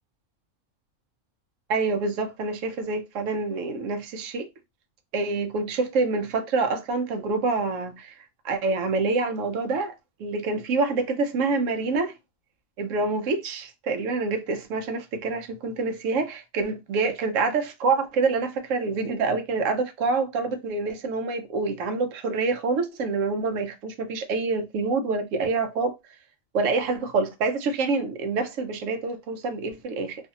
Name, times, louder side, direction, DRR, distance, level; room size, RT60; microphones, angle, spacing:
voice 1, 1.7-4.5 5.1-8.1 8.4-9.9 10.2-12.1 12.8-26.0 26.5-30.2, right 3 dB, 70° right, 0.9 m, -26 dB
2.6 x 2.5 x 2.6 m
omnidirectional pair, 1.4 m